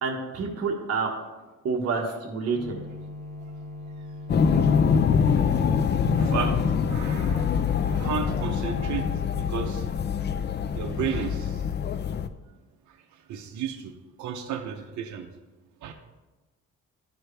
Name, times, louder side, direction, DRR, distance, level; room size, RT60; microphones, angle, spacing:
voice 1, 0.0-1.1 1.6-2.8, right 4 dB, 55° right, 0 dB, 1.4 m, -28 dB
sound 1, 2.5-9.1, left 2 dB, 15° left, 2.1 m, -40 dB
sound 2, 4.3-12.3, left 6 dB, 35° left, 0.4 m, -24 dB
voice 2, 6.2-6.6 6.8-9.1 9.4-9.8 10.7-11.6 13.3-13.9 14.2-15.3 15.8-15.9, right 8 dB, 70° right, 4 dB, 0.8 m, -33 dB
12.0 x 4.6 x 3.3 m, 1.1 s
cardioid pair, 90°, 30 cm